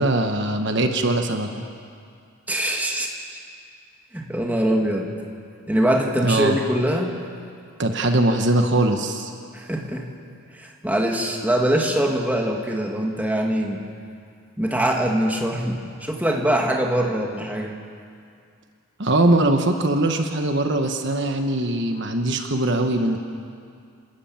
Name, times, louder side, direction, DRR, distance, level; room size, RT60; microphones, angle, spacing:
voice 1, 0.0-1.6 6.2-6.6 7.8-9.3 19.0-23.2, right 2 dB, 55° right, 5 dB, 1.2 m, -21 dB
voice 2, 2.5-3.4 4.1-5.1 5.7-7.1 9.5-10.1 10.5-13.8 14.6-17.8, right 1 dB, 5° right, 0 dB, 1.9 m, -23 dB
28.0 x 13.0 x 8.8 m, 2.3 s
head